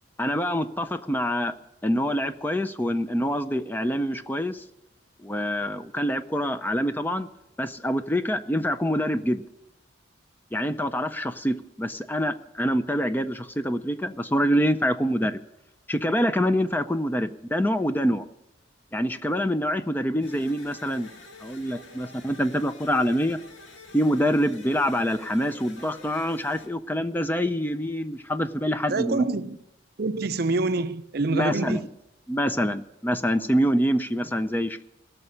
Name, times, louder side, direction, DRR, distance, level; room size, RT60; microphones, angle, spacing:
voice 1, 0.2-1.5 1.8-4.6 5.2-7.3 7.6-9.4 10.5-15.4 15.9-18.2 18.9-21.1 21.4-23.4 23.9-29.2 31.3-31.8 32.3-34.8, equal, 10° left, 0.5 m, -25 dB
sound 1, 20.2-26.7, left 3 dB, 80° left, 2.0 m, -48 dB
voice 2, 28.9-29.6 30.0-31.9, right 3 dB, 50° right, 0.6 m, -26 dB
17.0 x 6.7 x 9.8 m
head